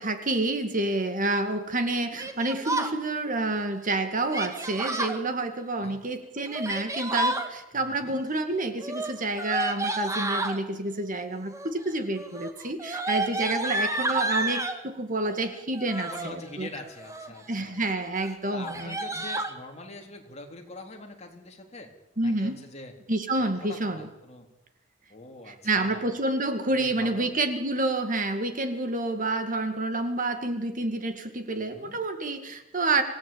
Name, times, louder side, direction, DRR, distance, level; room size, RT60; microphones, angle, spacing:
voice 1, 0.0-16.7 17.5-19.0 22.2-22.6 23.1-24.1 25.5-33.0, right 2 dB, 40° right, 7 dB, 2.2 m, -29 dB
Yell, 2.2-2.9 4.3-5.2 6.4-7.5 8.8-10.6 11.4-11.8 12.2-14.8 15.7-16.3 16.9-17.4 17.8-17.9 18.2-18.3 18.6-19.5, right 2 dB, 15° right, 2.0 m, -30 dB
voice 2, 7.7-8.2 16.0-17.8 18.5-21.9 22.2-22.9 23.4-24.5 25.1-26.0 26.6-27.3 31.7-32.0, left 2 dB, 35° left, 2 dB, 3.9 m, -43 dB
26.5 x 18.0 x 8.8 m, 0.94 s
head